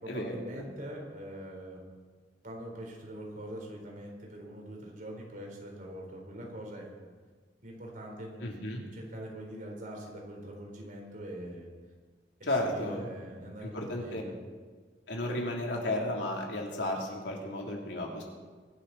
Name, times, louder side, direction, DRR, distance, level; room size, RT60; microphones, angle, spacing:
voice 1, 0.0-2.0 2.4-7.1 7.6-11.7 12.4-14.4, right 1 dB, 50° right, 0 dB, 4.0 m, -43 dB
voice 2, 8.4-8.8 12.5-13.0 13.6-14.2 15.1-18.2, left 1 dB, 85° left, -1 dB, 3.2 m, -33 dB
23.0 x 12.0 x 4.2 m, 1.5 s
head